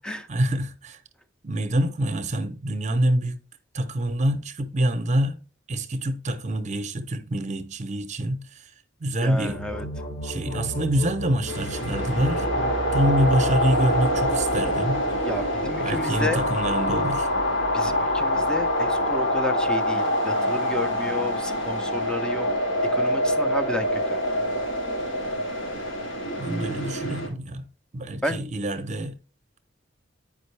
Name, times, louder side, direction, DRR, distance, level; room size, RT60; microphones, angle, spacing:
voice 1, 0.3-1.0 1.4-3.4 3.7-5.4 5.7-8.6 9.0-9.6 10.2-12.5 12.9-15.0 15.8-17.3 26.4-27.7 27.9-29.2, right 1 dB, 40° right, 0.8 m, -26 dB
voice 2, 9.2-9.9 15.2-16.4 17.7-22.5 22.9-24.0 28.2-28.4, left 1 dB, 5° left, 0.6 m, -31 dB
sound 1, 9.3-19.9, equal, 45° left, 1.3 m, -35 dB
sound 2, 11.5-27.3, equal, 90° left, 2.8 m, -25 dB
9.1 x 5.1 x 3.3 m
head